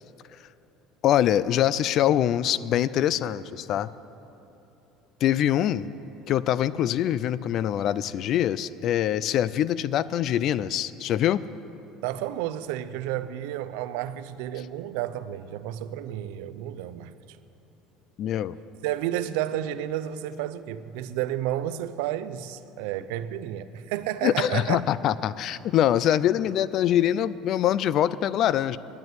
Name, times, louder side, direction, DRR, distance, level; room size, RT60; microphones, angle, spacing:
voice 1, 1.0-3.9 5.2-5.9 6.3-11.4 18.2-18.6 24.2-28.8, left 11 dB, 45° left, 0.3 m, -24 dB
voice 2, 12.0-17.4 18.8-24.8, right 12 dB, 85° right, 0.5 m, -31 dB
10.5 x 9.5 x 9.3 m
cardioid pair, 155°, 0 cm